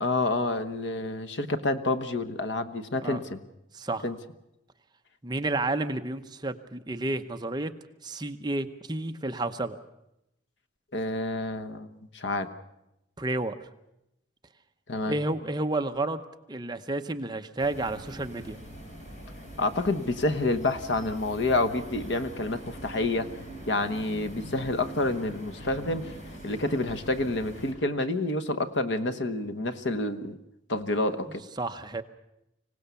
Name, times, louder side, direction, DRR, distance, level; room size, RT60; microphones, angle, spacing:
voice 1, 0.0-3.4 4.0-4.2 10.9-11.9 12.1-12.5 14.9-15.1 19.6-23.3 23.7-26.1 26.4-30.4 30.7-31.4, left 2 dB, 65° left, 8 dB, 1.2 m, -28 dB
voice 2, 3.7-4.0 5.2-7.7 8.0-9.8 13.2-13.7 15.1-16.2 16.5-18.6 31.6-32.0, right 2 dB, 20° right, 7 dB, 0.8 m, -31 dB
sound 1, 17.6-27.7, equal, 40° left, 3.7 m, -43 dB
25.0 x 17.5 x 7.0 m, 0.87 s
head